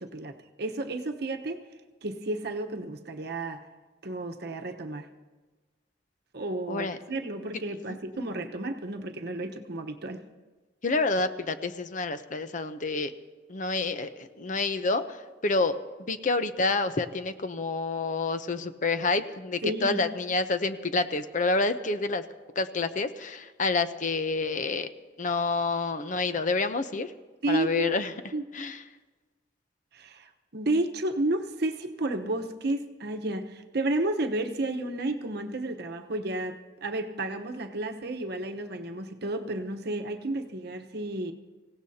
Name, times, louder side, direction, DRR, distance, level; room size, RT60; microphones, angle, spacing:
voice 1, 0.0-1.6 2.0-3.6 4.0-5.1 6.3-10.2 19.6-20.0 27.4-27.9 28.3-28.4 29.9-41.3, right 2 dB, 60° right, 5 dB, 1.0 m, -32 dB
voice 2, 6.7-7.0 10.8-13.1 13.5-15.8 16.1-22.2 22.6-24.9 25.2-27.1 27.5-28.1 28.5-28.8, left 3 dB, 45° left, 10 dB, 0.7 m, -28 dB
25.0 x 16.5 x 2.8 m, 1.3 s
head